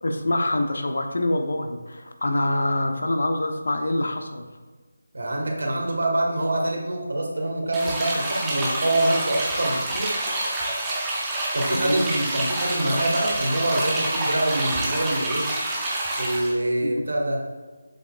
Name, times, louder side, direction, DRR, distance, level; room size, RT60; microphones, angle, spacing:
voice 1, 0.0-4.5 11.7-12.0 16.8-17.1, left 1 dB, 80° left, 5 dB, 1.0 m, -25 dB
voice 2, 5.1-10.1 11.5-15.5 16.2-17.4, right 1 dB, 80° right, -1 dB, 1.7 m, -25 dB
sound 1, 7.7-16.5, right 2 dB, 5° right, 0.6 m, -27 dB
7.4 x 6.3 x 2.5 m, 1.4 s
figure-of-eight pair, 180°, 0 cm